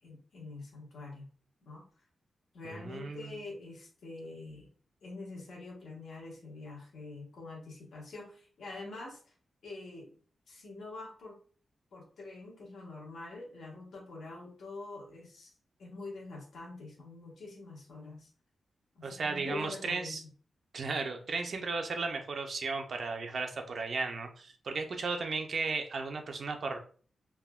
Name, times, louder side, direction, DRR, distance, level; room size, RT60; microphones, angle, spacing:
voice 1, 0.0-1.3 1.7-1.8 2.5-4.7 5.0-9.2 9.6-10.1 10.5-11.4 11.9-18.3 18.9-20.2, left 2 dB, 85° left, -2 dB, 1.0 m, -45 dB
voice 2, 2.6-3.4 19.0-20.2 20.7-26.8, right 4 dB, 55° right, 5 dB, 0.4 m, -35 dB
3.3 x 2.1 x 2.2 m, 0.43 s
wide cardioid pair, 140°, 0 cm